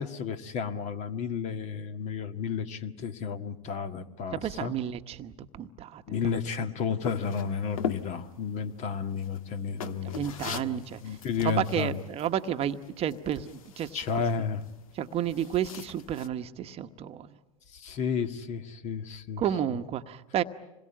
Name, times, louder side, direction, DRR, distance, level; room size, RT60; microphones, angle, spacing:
voice 1, 0.0-4.7 6.1-12.0 13.9-14.6 17.7-19.4, left 6 dB, 40° left, 9 dB, 1.7 m, -32 dB
voice 2, 4.3-6.0 9.9-11.2 11.4-14.0 14.9-17.3 19.4-20.4, right 10 dB, 35° right, 9 dB, 1.1 m, -31 dB
sound 1, 7.0-16.3, left 8 dB, 75° left, 1.4 m, -42 dB
27.0 x 21.5 x 8.8 m, 0.98 s
hypercardioid pair, 100°, 18 cm